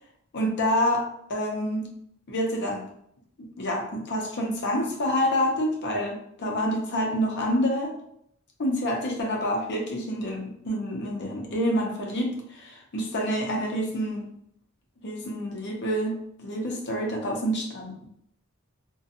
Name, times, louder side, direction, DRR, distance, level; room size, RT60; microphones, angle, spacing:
voice 1, 0.3-1.9 2.3-2.9 3.6-7.9 8.6-14.3 15.0-18.1, equal, 55° left, 0 dB, 0.6 m, -27 dB
2.5 x 2.2 x 2.6 m, 0.72 s
head